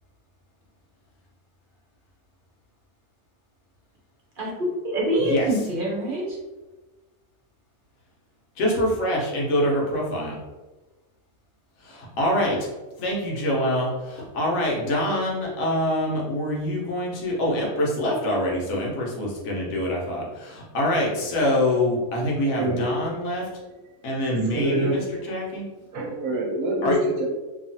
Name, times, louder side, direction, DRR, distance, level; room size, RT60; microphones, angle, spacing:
voice 1, 4.4-6.4, right 1 dB, 50° right, -4 dB, 0.8 m, -25 dB
voice 2, 8.6-10.4 11.8-12.6 13.0-23.4 24.0-25.0 25.3-25.6 26.8-27.0, left 1 dB, 85° left, -3 dB, 1.3 m, -25 dB
voice 3, 22.4-23.4 24.3-25.4 25.9-27.3, right 1 dB, 85° right, -1 dB, 1.1 m, -27 dB
2.9 x 2.4 x 2.6 m, 1.2 s
omnidirectional pair, 1.4 m